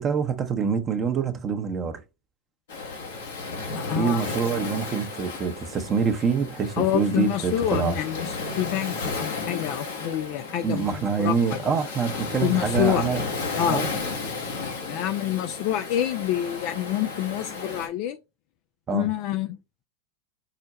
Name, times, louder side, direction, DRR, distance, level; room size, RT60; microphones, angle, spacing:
voice 1, 0.0-2.0 3.9-8.0 10.6-13.2 13.7-13.9 18.9-19.1, right 6 dB, 30° right, 0.7 m, -26 dB
Waves surf, 2.7-17.9, left 3 dB, 75° left, 1.4 m, -33 dB
voice 2, 3.8-4.2 6.8-8.3 8.6-11.6 12.4-13.1 13.6-13.9 14.9-18.2 18.9-19.6, left 11 dB, 55° left, 0.4 m, -27 dB
4.9 x 2.1 x 4.0 m
hypercardioid pair, 90°, 0 cm